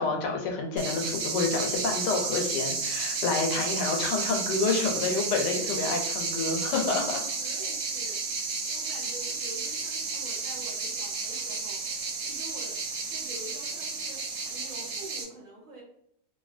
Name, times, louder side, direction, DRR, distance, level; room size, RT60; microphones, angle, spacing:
voice 1, 0.0-7.2, left 4 dB, 80° left, 2 dB, 1.2 m, -28 dB
sound 1, 0.8-15.2, right 4 dB, 70° right, 1.0 m, -32 dB
voice 2, 7.0-14.2 14.5-15.8, right 2 dB, 55° right, -5 dB, 1.3 m, -47 dB
2.7 x 2.6 x 2.4 m, 0.73 s
omnidirectional pair, 1.8 m